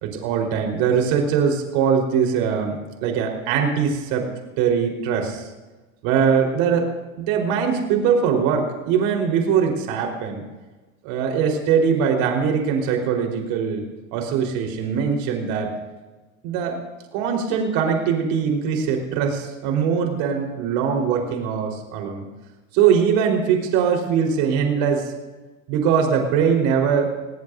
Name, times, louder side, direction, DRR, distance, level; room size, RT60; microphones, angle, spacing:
voice 1, 0.0-4.3 4.6-5.4 6.0-6.9 7.2-10.4 11.0-13.8 14.1-15.7 16.4-16.8 17.1-22.2 22.7-25.1 25.7-27.1, right 7 dB, 60° right, 2 dB, 4.5 m, -21 dB
27.5 x 19.0 x 2.7 m, 1.2 s
hypercardioid pair, 90°, 41 cm